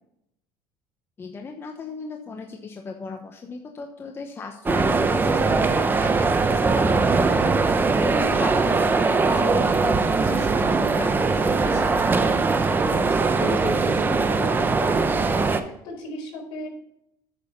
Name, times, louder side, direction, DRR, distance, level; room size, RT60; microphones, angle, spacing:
voice 1, 1.2-12.3 13.5-13.6, left 4 dB, 25° left, 4 dB, 1.0 m, -36 dB
sound 1, 4.7-15.6, right 4 dB, 20° right, 0.8 m, -21 dB
voice 2, 12.9-16.7, left 3 dB, 65° left, 0 dB, 4.2 m, -36 dB
8.7 x 6.5 x 5.6 m, 0.78 s
cardioid pair, 120°, 10 cm